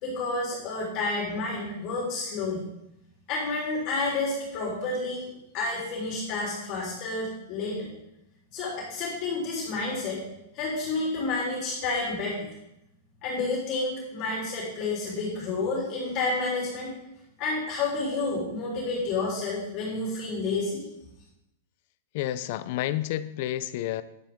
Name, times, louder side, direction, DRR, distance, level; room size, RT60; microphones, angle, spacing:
voice 1, 0.0-2.6 3.3-7.9 8.5-10.2 10.5-12.5 13.2-17.0 17.4-20.8, left 3 dB, 40° left, -4 dB, 3.8 m, -30 dB
voice 2, 22.1-24.0, left 13 dB, 55° left, 14 dB, 0.7 m, -30 dB
11.0 x 10.0 x 3.8 m, 0.84 s
supercardioid pair, 145°, 0 cm